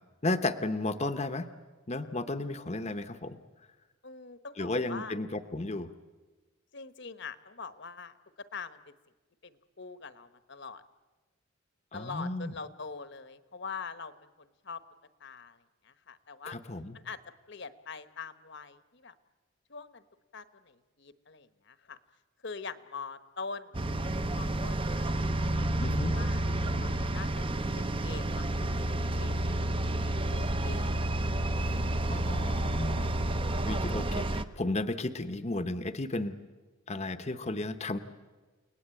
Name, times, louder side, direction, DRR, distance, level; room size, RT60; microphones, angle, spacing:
voice 1, 0.2-1.5 1.9-3.4 4.6-5.9 11.9-12.5 16.4-17.0 25.8-26.1 32.1-33.1 33.6-36.3 36.9-38.0, left 2 dB, 30° left, 9 dB, 0.9 m, -33 dB
voice 2, 4.0-5.1 6.7-8.1 8.5-8.8 9.4-9.5 9.8-10.8 11.9-14.1 14.6-14.8 15.2-15.6 15.9-16.6 17.0-17.2 17.5-19.1 19.7-20.0 20.3-22.0 22.4-23.7 24.3-25.7 26.1-26.4 26.8-27.5 27.8-28.8 29.2-29.6 30.0-30.9, left 4 dB, 55° left, 12 dB, 1.2 m, -43 dB
sound 1, 23.7-34.4, right 1 dB, 25° right, 0.7 m, -30 dB
30.0 x 19.0 x 9.0 m, 1.3 s
head